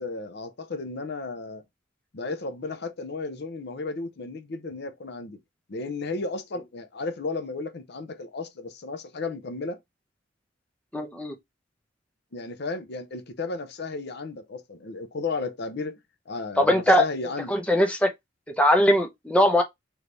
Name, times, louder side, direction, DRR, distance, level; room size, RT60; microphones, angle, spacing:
voice 1, 0.0-1.6 2.1-5.4 5.7-9.8 12.3-16.0 16.3-17.6, left 3 dB, 55° left, 0.7 m, -34 dB
voice 2, 10.9-11.3 16.6-17.1 17.5-18.1 18.6-19.6, equal, 5° left, 0.8 m, -20 dB
3.3 x 3.1 x 3.8 m
head